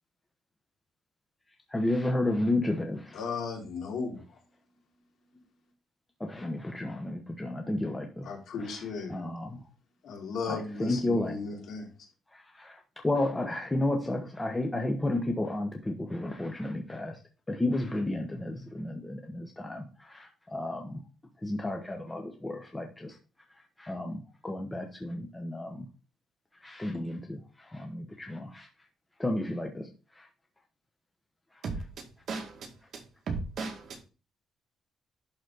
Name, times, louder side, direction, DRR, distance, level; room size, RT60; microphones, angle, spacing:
voice 1, 1.7-3.2 6.2-8.3 9.1-9.6 10.5-11.4 12.5-12.8 13.0-17.2 17.5-21.0 21.4-23.1 23.8-25.9 26.6-27.4 27.7-28.7 29.2-29.9 30.2-30.3, left 1 dB, 10° left, 1.1 m, -32 dB
voice 2, 3.1-4.4 8.2-9.2 10.0-11.9, left 4 dB, 65° left, 3.4 m, -36 dB
voice 3, 31.6-34.0, right 4 dB, 55° right, 2.0 m, -37 dB
11.5 x 4.1 x 4.0 m
cardioid pair, 135°, 0 cm